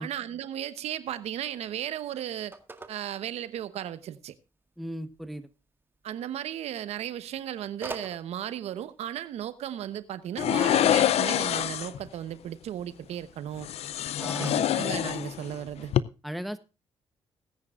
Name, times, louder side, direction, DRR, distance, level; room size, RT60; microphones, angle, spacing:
voice 1, 0.0-2.6 2.9-4.3 6.0-13.7 14.4-15.9, right 11 dB, 80° right, 0.9 m, -35 dB
Telephone, 1.2-15.7, right 3 dB, 20° right, 1.8 m, -50 dB
voice 2, 4.8-5.5 14.2-14.5 16.2-16.6, equal, ahead, 1.1 m, -36 dB
sound 1, 10.4-12.0 13.6-15.6 15.8-16.0, left 11 dB, 70° left, 0.5 m, -25 dB
19.0 x 9.7 x 2.5 m
cardioid pair, 90°, 11 cm